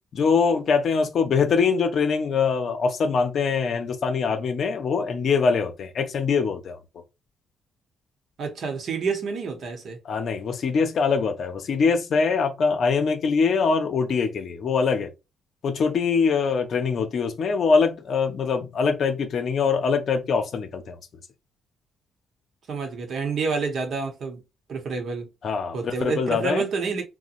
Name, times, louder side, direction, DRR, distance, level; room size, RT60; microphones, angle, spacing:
voice 1, 0.1-6.8 10.0-15.1 15.6-21.0 25.4-26.6, left 5 dB, 60° left, 0.6 m, -23 dB
voice 2, 8.4-10.0 22.7-24.4 24.7-25.3 25.7-27.0, right 5 dB, 60° right, 0.9 m, -28 dB
2.8 x 2.1 x 2.5 m
cardioid pair, 90°, 0 cm